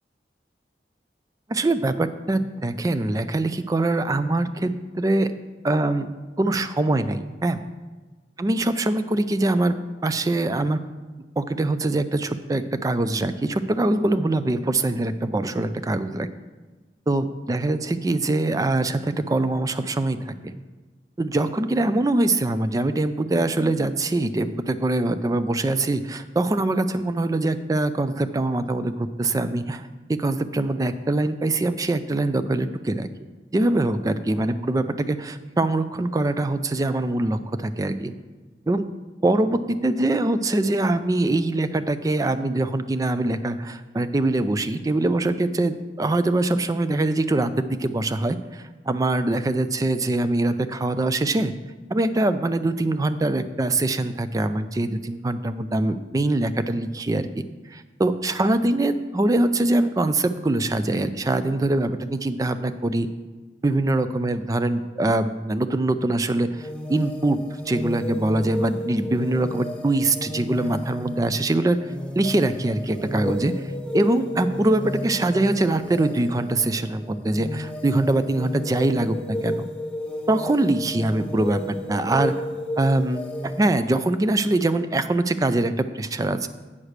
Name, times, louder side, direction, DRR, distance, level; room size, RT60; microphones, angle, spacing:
voice 1, 1.5-5.3 5.6-6.1 6.4-7.6 8.4-9.8 10.0-10.8 11.4-16.3 17.1-20.5 21.2-33.1 33.5-38.1 38.7-38.9 39.2-51.5 51.9-57.4 57.7-63.1 63.6-67.4 67.7-71.8 72.2-73.5 73.9-79.7 80.3-82.3 82.8-86.5, right 2 dB, 20° right, 11 dB, 0.3 m, -23 dB
sound 1, 66.6-83.7, left 1 dB, 5° left, 0.7 m, -33 dB
8.6 x 4.8 x 6.5 m, 1.3 s
head